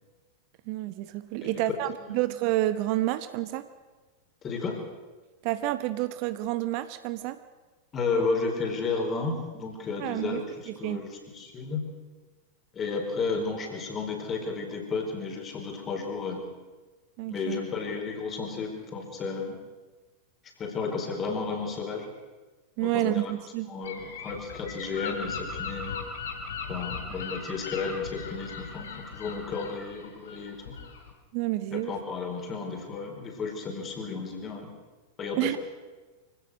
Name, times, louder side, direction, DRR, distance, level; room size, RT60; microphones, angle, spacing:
voice 1, 0.7-3.7 5.4-7.4 10.0-10.4 10.7-11.0 17.2-17.6 22.8-23.7 31.3-31.9 35.4-35.6, right 15 dB, 45° right, 12 dB, 0.9 m, -29 dB
voice 2, 4.4-4.8 7.9-11.8 12.7-16.4 17.3-19.6 20.6-22.1 22.8-23.3 23.7-26.0 26.7-30.8 31.7-34.7 35.2-35.6, left 4 dB, 25° left, 3 dB, 4.5 m, -33 dB
Gull seagull / Wind, 23.8-31.1, left 5 dB, 65° left, 3.0 m, -38 dB
24.5 x 16.5 x 6.4 m, 1.3 s
figure-of-eight pair, 90°, 0 cm